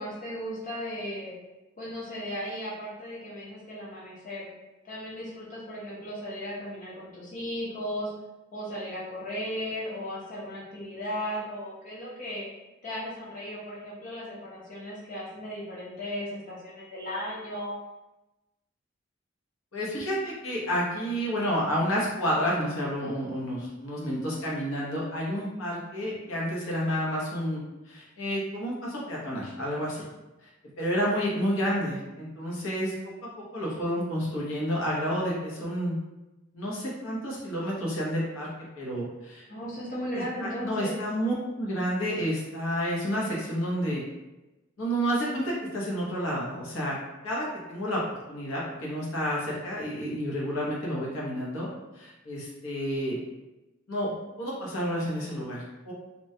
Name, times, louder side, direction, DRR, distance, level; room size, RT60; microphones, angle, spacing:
voice 1, 0.0-1.3 1.8-4.5 4.8-8.1 8.5-12.4 12.8-17.8 39.5-41.0, equal, 40° left, -6 dB, 0.7 m, -36 dB
voice 2, 19.7-27.6 27.9-30.0 30.4-30.5 30.8-32.9 33.2-36.0 36.5-38.5 38.8-39.4 40.1-44.0 44.8-47.0 47.2-51.7 51.9-53.1 53.9-55.9, equal, 85° left, -5 dB, 0.8 m, -30 dB
2.9 x 2.2 x 2.7 m, 1.0 s
head